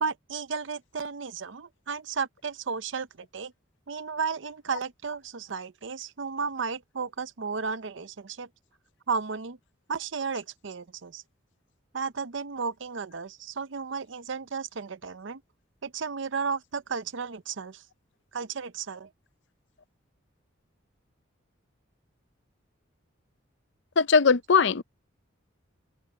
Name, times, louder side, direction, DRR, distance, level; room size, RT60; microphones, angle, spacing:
voice 1, 0.0-3.5 3.9-8.5 9.1-9.6 9.9-11.2 11.9-15.4 15.8-17.8 18.3-19.1, right 5 dB, 65° right, 0.7 m, -33 dB
voice 2, 24.0-24.8, left 5 dB, 60° left, 0.6 m, -20 dB
head